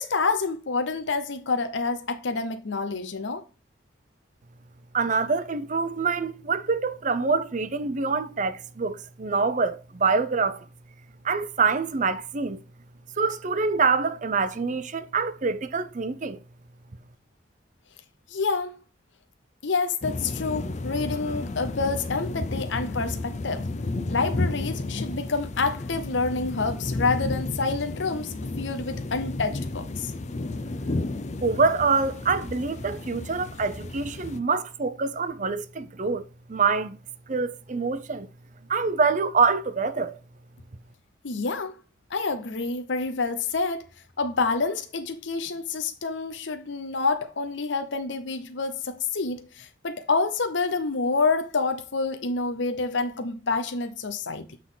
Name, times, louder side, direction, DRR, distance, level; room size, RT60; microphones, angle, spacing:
voice 1, 0.0-3.4 18.3-18.8 19.6-23.7 24.1-30.1 41.2-41.8 42.1-43.9 44.2-54.6, left 4 dB, 70° left, 0.8 m, -28 dB
voice 2, 4.9-10.7 11.2-12.6 13.2-16.4 31.4-36.2 36.5-37.0 37.3-38.3 38.7-40.2, right 4 dB, 40° right, 0.5 m, -25 dB
sound 1, 20.0-34.4, left 2 dB, 35° left, 0.5 m, -32 dB
8.4 x 3.7 x 3.8 m
head